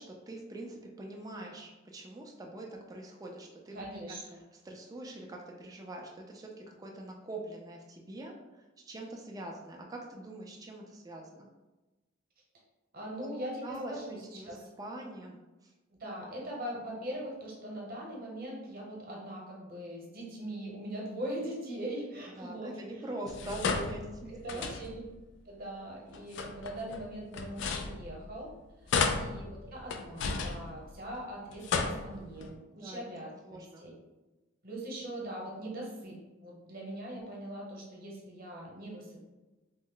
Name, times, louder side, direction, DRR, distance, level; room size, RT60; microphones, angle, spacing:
voice 1, 0.0-3.8 4.6-11.5 13.2-13.3 13.6-15.7 22.4-24.7 32.8-33.0 33.4-33.9, right 1 dB, 20° right, 0 dB, 0.4 m, -44 dB
voice 2, 3.7-4.4 12.9-14.6 15.9-22.8 24.3-25.0 25.4-28.5 28.8-33.9 34.6-39.2, right 1 dB, 50° right, -3 dB, 0.9 m, -41 dB
sound 1, 23.3-25.2 26.1-28.5 28.9-31.2 31.5-32.5, left 4 dB, 65° left, 0.3 m, -34 dB
3.1 x 2.1 x 3.7 m, 1.1 s
head